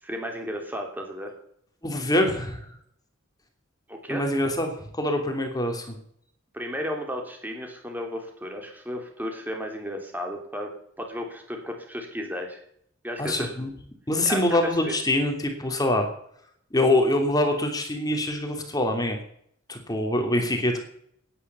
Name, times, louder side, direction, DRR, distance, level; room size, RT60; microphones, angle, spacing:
voice 1, 0.0-1.3 3.9-4.2 6.5-10.7 11.0-12.6 13.0-13.5 14.3-14.4 14.8-15.0, equal, 10° right, 2 dB, 3.1 m, -34 dB
voice 2, 1.8-2.7 4.1-5.9 13.2-13.7 14.1-16.1 16.7-19.2 19.7-20.8, left 1 dB, 20° left, 4 dB, 2.8 m, -24 dB
16.0 x 10.0 x 6.9 m, 0.68 s
head